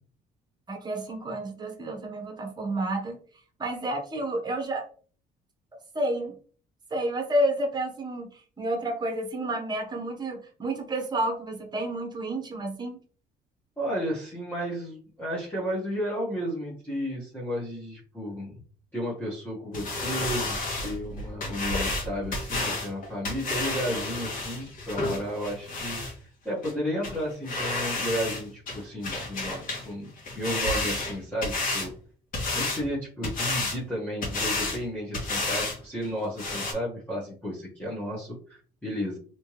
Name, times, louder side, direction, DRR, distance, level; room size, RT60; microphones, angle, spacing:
voice 1, 0.7-3.2 3.6-4.9 5.9-6.3 6.9-13.0, right 1 dB, 25° right, 4 dB, 1.0 m, -30 dB
voice 2, 13.8-18.5 18.9-26.0 26.4-30.1 30.3-31.9 32.5-39.2, equal, 10° left, -7 dB, 1.3 m, -33 dB
sound 1, 19.7-26.1 26.6-26.7 27.0-27.2 27.5-28.4 28.7-29.9 30.2-31.9 32.3-32.8 33.2-33.8 34.2-34.8 35.1-35.8 36.0-36.1 36.4-36.7, left 2 dB, 55° left, 1.4 m, -30 dB
3.3 x 2.9 x 3.0 m, 0.43 s
cardioid pair, 110°, 17 cm